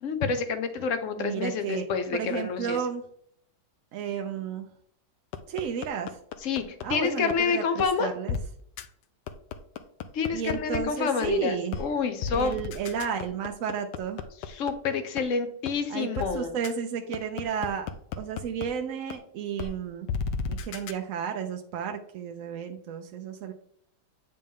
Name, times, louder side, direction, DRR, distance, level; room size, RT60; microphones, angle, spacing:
voice 1, 0.0-2.8 6.4-8.1 10.1-12.6 14.5-16.5, left 5 dB, 55° left, 9 dB, 1.0 m, -28 dB
voice 2, 1.2-1.8 2.1-3.0 3.9-4.7 5.5-6.2 6.8-8.4 10.3-11.8 12.3-14.3 15.9-17.9 18.2-20.1 20.5-23.5, right 7 dB, 65° right, 4 dB, 0.9 m, -32 dB
sound 1, 5.3-6.9 7.3-7.4 7.8-7.9 8.3-8.4 8.8-8.9 9.3-10.8 11.2-11.3 11.7-11.8 12.2-14.7 15.2-15.3 15.7-15.8 16.1-16.3 16.6-16.7 17.1-18.7 19.1-19.2 19.6-19.7 20.1-20.9, left 6 dB, 85° left, 1.2 m, -33 dB
8.7 x 4.3 x 3.6 m, 0.66 s
omnidirectional pair, 1.8 m